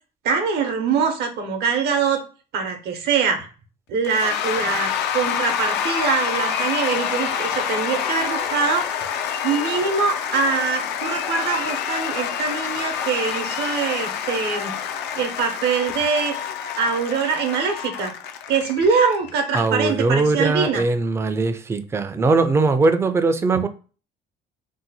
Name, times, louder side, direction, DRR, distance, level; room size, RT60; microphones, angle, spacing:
voice 1, 0.2-2.2 2.5-3.5 3.9-8.8 9.4-14.7 15.1-16.4 16.8-18.1 18.5-20.8, right 5 dB, 80° right, 0.7 m, -23 dB
Cheering / Applause / Crowd, 4.0-19.7, left 8 dB, 85° left, 0.4 m, -27 dB
voice 2, 19.5-23.7, right 3 dB, 15° right, 0.3 m, -20 dB
2.7 x 2.2 x 4.0 m
cardioid pair, 110°, 17 cm